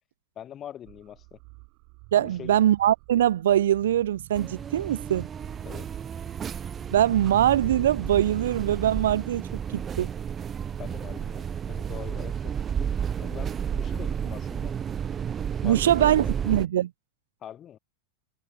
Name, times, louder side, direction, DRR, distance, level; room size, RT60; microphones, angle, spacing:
voice 1, 0.4-1.4 2.2-2.5 5.6-5.9 10.8-12.9 13.2-14.7 15.6-16.1 17.4-17.8, left 10 dB, 30° left, 0.9 m, -43 dB
sound 1, 0.9-11.7, right 34 dB, 45° right, 1.9 m, -51 dB
voice 2, 2.1-5.3 6.9-10.1 15.6-16.9, right 11 dB, 60° right, 0.4 m, -23 dB
sound 2, 4.3-16.7, right 8 dB, 20° right, 1.0 m, -32 dB
figure-of-eight pair, 90°, 0 cm